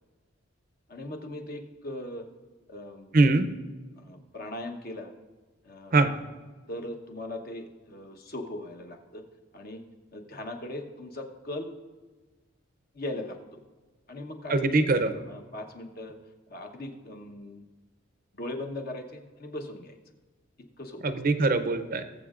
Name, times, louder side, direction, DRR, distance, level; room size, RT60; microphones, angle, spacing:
voice 1, 0.9-2.3 2.7-3.3 4.0-5.1 5.6-6.1 6.7-9.2 9.5-9.8 10.1-11.7 12.9-13.4 14.1-14.6 15.1-16.1 16.5-17.6 18.4-20.0 20.8-21.2, left 1 dB, 50° left, 4 dB, 1.0 m, -39 dB
voice 2, 3.1-3.5 5.9-6.1 14.5-15.1 21.0-22.0, right 3 dB, 45° right, 10 dB, 0.5 m, -22 dB
20.0 x 7.3 x 2.5 m, 1.3 s
head